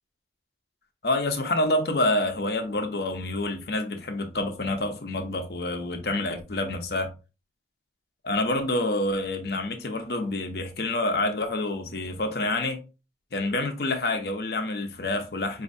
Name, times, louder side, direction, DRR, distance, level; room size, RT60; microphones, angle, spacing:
voice 1, 1.0-7.1 8.2-12.8 13.3-15.6, left 2 dB, 60° left, 0.8 m, -27 dB
5.2 x 2.8 x 2.7 m
head